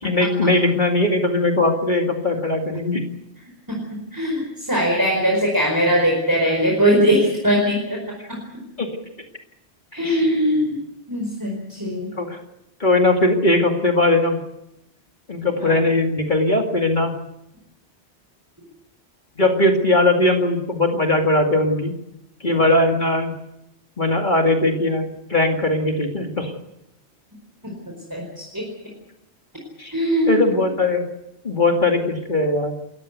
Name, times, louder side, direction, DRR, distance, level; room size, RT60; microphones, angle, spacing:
voice 1, 0.0-3.0 8.8-8.9 10.0-10.3 12.1-12.4 12.8-14.4 15.3-17.1 19.4-21.9 22.4-23.3 24.0-26.5 29.8-29.9 30.3-31.0 31.4-32.7, left 2 dB, 45° left, 3 dB, 2.5 m, -19 dB
voice 2, 3.7-8.0 8.3-8.4 9.9-10.8 11.1-12.1 15.6-15.8 27.6-27.7 28.1-28.7 29.9-30.5, equal, 15° right, -1 dB, 4.9 m, -21 dB
28.5 x 15.0 x 8.2 m, 0.85 s
omnidirectional pair, 1.1 m